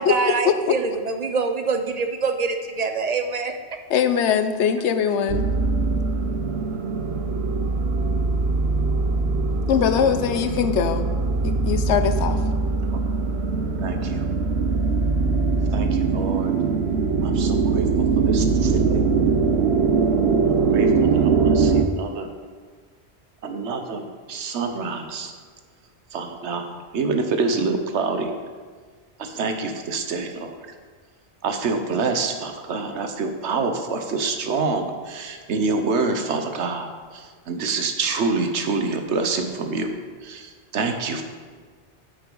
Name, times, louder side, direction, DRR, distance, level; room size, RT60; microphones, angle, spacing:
voice 1, 0.0-3.5, right 4 dB, 50° right, 6 dB, 0.5 m, -25 dB
voice 2, 3.9-5.5 9.7-11.0 11.4-12.4, left 7 dB, 85° left, 9 dB, 0.9 m, -21 dB
sound 1, 5.3-21.8, right 4 dB, 70° right, 0.9 m, -22 dB
voice 3, 13.8-14.3 15.7-16.5 17.2-17.9 18.2-19.0 20.7-22.3 23.4-25.3 26.1-28.3 29.2-30.7 31.4-39.9 40.2-41.2, right 4 dB, 85° right, 6 dB, 1.1 m, -27 dB
9.7 x 6.2 x 3.9 m, 1.5 s
omnidirectional pair, 1.1 m